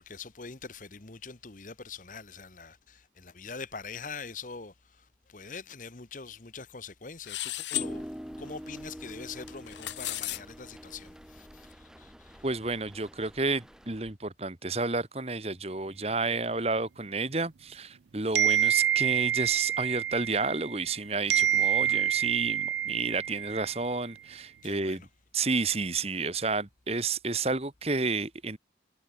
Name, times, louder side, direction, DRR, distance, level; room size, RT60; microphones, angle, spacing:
voice 1, 0.0-12.4 21.8-22.1 24.6-25.1, left 5 dB, 45° left, 1.1 m, -44 dB
sound 1, 7.2-7.9 9.5-10.4, left 15 dB, 80° left, 0.7 m, -33 dB
sound 2, 7.7-14.1, equal, 5° right, 1.7 m, -45 dB
voice 2, 12.4-25.0 25.3-28.6, right 3 dB, 35° right, 1.6 m, -31 dB
sound 3, 18.3-21.0 21.3-23.9, right 10 dB, 75° right, 0.4 m, -27 dB
head